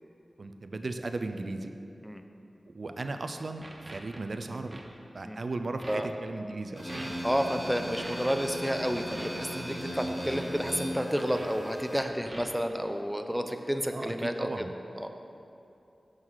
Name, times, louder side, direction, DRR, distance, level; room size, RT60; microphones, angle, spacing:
voice 1, 0.4-1.7 2.7-4.8 5.1-7.1 13.9-14.7, right 2 dB, 65° right, 7 dB, 0.4 m, -36 dB
sound 1, 3.1-3.3 3.6-4.2 4.7-4.8 5.2-5.4 5.8-6.0 6.6-6.7 6.9-7.2 8.0-8.3 9.0-9.3 10.2-10.5 11.3-11.5 11.8-12.6, right 1 dB, 30° right, 0.8 m, -45 dB
sound 2, 6.7-12.0, equal, 35° left, 1.6 m, -37 dB
voice 2, 7.2-14.6 14.9-15.1, equal, 5° right, 6 dB, 0.5 m, -31 dB
6.2 x 6.2 x 3.7 m, 2.7 s
cardioid pair, 40°, 0 cm